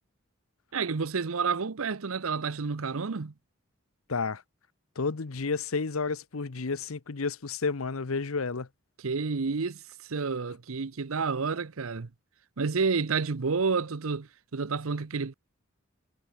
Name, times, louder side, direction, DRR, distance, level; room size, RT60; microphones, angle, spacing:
voice 1, 0.7-3.3 9.0-12.1 12.6-15.3, right 5 dB, 80° right, 0.8 m, -30 dB
voice 2, 4.1-4.4 5.0-8.7, left 4 dB, 85° left, 0.9 m, -31 dB
head